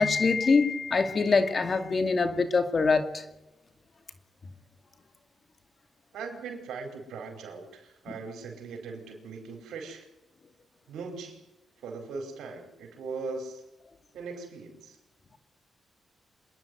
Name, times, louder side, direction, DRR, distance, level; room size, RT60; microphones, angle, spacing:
voice 1, 0.0-3.2, left 4 dB, 45° left, 2.4 m, -24 dB
voice 2, 6.1-10.1 10.9-11.4 11.8-13.6 14.1-15.0, right 4 dB, 85° right, 4.9 m, -39 dB
26.5 x 11.0 x 9.4 m
cardioid pair, 65°, 0 cm